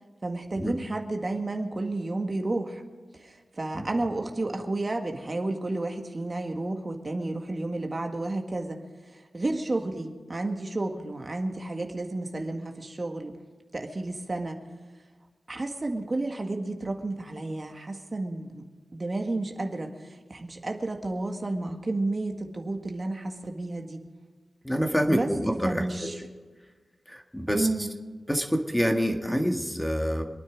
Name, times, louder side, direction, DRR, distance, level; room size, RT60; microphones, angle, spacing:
voice 1, 0.2-2.8 3.1-8.8 9.1-13.4 13.7-14.6 15.5-18.7 18.9-24.0 25.1-26.2 27.5-27.9, right 2 dB, 40° right, 3 dB, 1.8 m, -31 dB
voice 2, 24.6-25.8 27.1-27.7 28.3-30.2, equal, 5° left, 3 dB, 1.7 m, -26 dB
26.0 x 9.5 x 5.2 m, 1.4 s
cardioid pair, 55°, 0 cm